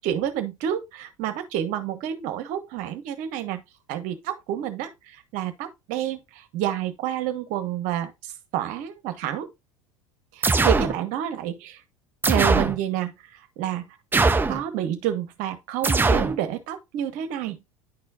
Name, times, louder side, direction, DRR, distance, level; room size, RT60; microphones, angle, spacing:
voice 1, 0.0-3.6 3.9-9.5 10.3-11.8 12.3-13.1 13.6-14.0 14.5-17.6, right 11 dB, 50° right, 1.1 m, -29 dB
sound 1, 10.4-11.0 12.2-12.8 14.1-14.6 15.8-16.4, right 3 dB, 10° right, 0.6 m, -20 dB
10.0 x 4.3 x 2.5 m
figure-of-eight pair, 70°, 17 cm